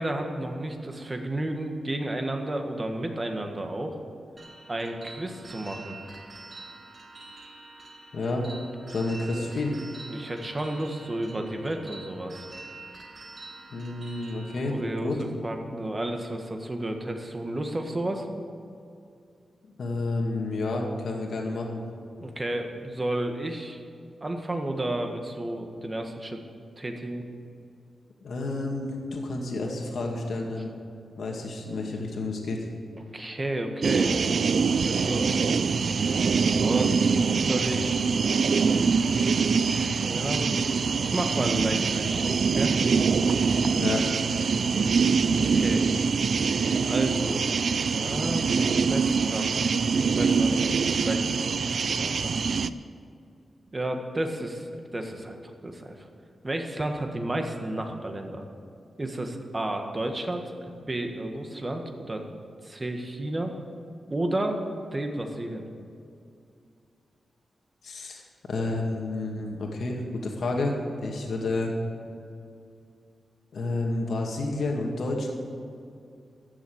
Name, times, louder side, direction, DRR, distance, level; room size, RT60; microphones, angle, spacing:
voice 1, 0.0-4.0 4.7-6.0 10.1-12.5 14.7-18.2 22.2-23.8 24.2-26.4 26.8-27.2 33.1-34.1 34.8-35.3 36.6-38.1 39.1-40.5 41.0-42.8 45.4-45.9 46.8-47.5 47.9-49.7 50.0-52.4 53.7-56.1 56.4-58.4 59.0-60.5 60.9-62.3 62.6-63.5 64.1-64.6 64.9-65.6, right 1 dB, 25° right, 4 dB, 1.7 m, -32 dB
sound 1, 4.4-14.7, right 3 dB, 45° right, 1.8 m, -46 dB
voice 2, 8.1-8.5 8.9-9.8 13.7-14.7 15.0-15.2 19.8-21.8 28.2-30.7 31.2-32.6 43.8-44.1 67.8-68.2 68.5-70.7 71.0-71.7 73.5-75.3, left 2 dB, 70° left, 0 dB, 2.2 m, -30 dB
sound 2, 33.8-52.7, right 5 dB, 65° right, 0.4 m, -24 dB
14.5 x 7.3 x 8.8 m, 2.4 s
cardioid pair, 85°, 0 cm